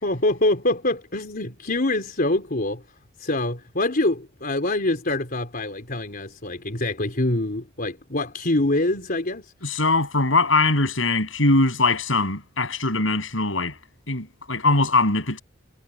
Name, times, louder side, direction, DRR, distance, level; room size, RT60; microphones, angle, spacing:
voice 1, 0.0-2.8 3.2-9.5, left 2 dB, 50° left, 4.0 m, -25 dB
voice 2, 9.6-13.8 14.1-15.4, left 2 dB, 75° left, 8.0 m, -21 dB
head